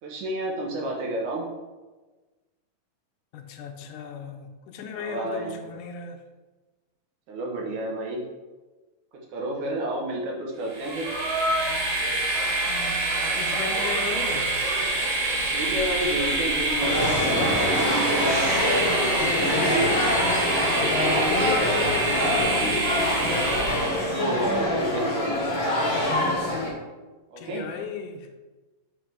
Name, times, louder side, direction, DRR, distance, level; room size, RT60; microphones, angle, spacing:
voice 1, 0.0-1.5 5.0-5.6 7.3-8.2 9.3-11.1 15.5-18.5 24.1-25.4 27.3-27.7, right 1 dB, 65° right, -2 dB, 2.3 m, -30 dB
voice 2, 3.3-6.2 12.7-14.5 20.1-20.8 21.2-23.1 27.4-28.3, left 5 dB, 80° left, 5 dB, 2.0 m, -35 dB
Train, 10.7-24.2, right 2 dB, 90° right, 3.4 m, -26 dB
sound 1, 16.8-26.7, left 1 dB, 60° left, 1.3 m, -25 dB
5.8 x 4.9 x 4.7 m, 1.2 s
omnidirectional pair, 4.0 m